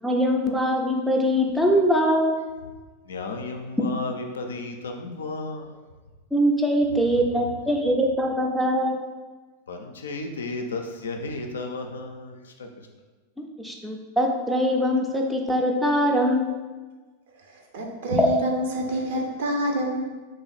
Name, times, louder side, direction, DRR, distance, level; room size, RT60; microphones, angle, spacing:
voice 1, 0.0-2.4 6.3-9.0 13.4-16.6 18.2-18.3, equal, 5° right, 1 dB, 0.5 m, -22 dB
voice 2, 3.1-5.7 9.7-12.4, left 3 dB, 65° left, 4 dB, 0.4 m, -33 dB
voice 3, 17.5-20.0, equal, 55° right, 1 dB, 0.6 m, -27 dB
3.1 x 2.5 x 4.0 m, 1.3 s
figure-of-eight pair, 90°, 0 cm